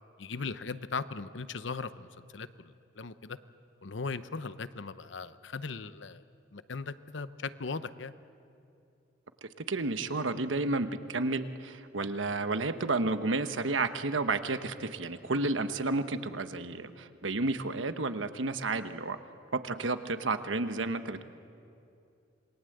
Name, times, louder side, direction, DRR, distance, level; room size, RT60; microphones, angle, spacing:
voice 1, 0.2-3.4 3.8-6.2 6.5-8.1, left 4 dB, 70° left, 13 dB, 0.8 m, -38 dB
voice 2, 9.4-19.2 19.5-21.2, right 3 dB, 90° right, 10 dB, 1.1 m, -31 dB
27.0 x 22.5 x 7.9 m, 2.6 s
head